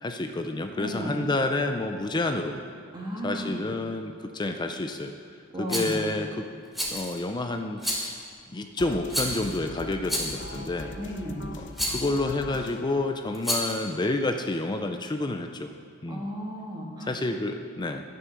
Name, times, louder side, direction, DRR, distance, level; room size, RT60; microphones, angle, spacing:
voice 1, 0.0-2.6 3.2-5.1 5.6-6.5 6.9-8.2 8.5-10.9 11.6-15.7 16.0-16.3 17.0-18.0, left 2 dB, 20° left, 6 dB, 0.5 m, -29 dB
voice 2, 0.8-1.2 2.9-3.6 5.5-6.1 11.0-11.5 16.1-17.1, equal, 20° right, -3 dB, 1.7 m, -34 dB
Rattle, 5.7-6.0 6.7-7.2 7.8-8.2 9.1-9.5 10.1-10.5 11.7-12.1 13.3-13.8, equal, ahead, 1.9 m, -30 dB
sound 1, 8.8-14.8, left 2 dB, 60° left, 0.8 m, -42 dB
11.0 x 9.8 x 6.4 m, 2.1 s
head